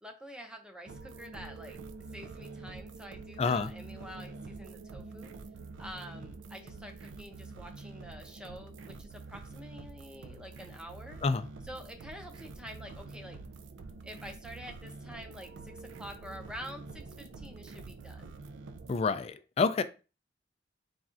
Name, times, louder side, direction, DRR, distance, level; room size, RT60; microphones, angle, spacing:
voice 1, 0.0-1.8 2.1-5.3 5.8-11.2 11.6-13.4 14.0-18.3, equal, 5° right, 0.6 m, -47 dB
sound 1, 0.9-19.0, right 3 dB, 90° right, 0.4 m, -47 dB
voice 2, 3.4-3.7 11.2-11.5 18.9-19.8, left 4 dB, 35° left, 0.3 m, -28 dB
4.2 x 3.5 x 2.5 m
head